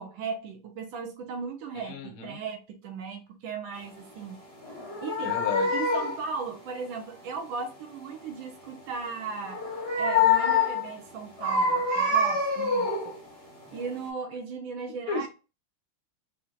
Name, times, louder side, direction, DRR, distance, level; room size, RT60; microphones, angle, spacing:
voice 1, 0.0-4.4 5.0-5.4 5.7-9.6 10.0-13.2 13.7-15.3, right 5 dB, 75° right, 4 dB, 1.4 m, -36 dB
voice 2, 1.9-2.4 5.2-5.7 15.1-15.3, left 4 dB, 80° left, 5 dB, 1.6 m, -33 dB
sound 1, 4.6-6.3 9.4-10.9 11.4-13.2 13.7-13.9, left 3 dB, 35° left, 1.5 m, -26 dB
4.3 x 2.7 x 2.3 m, 0.32 s
omnidirectional pair, 2.3 m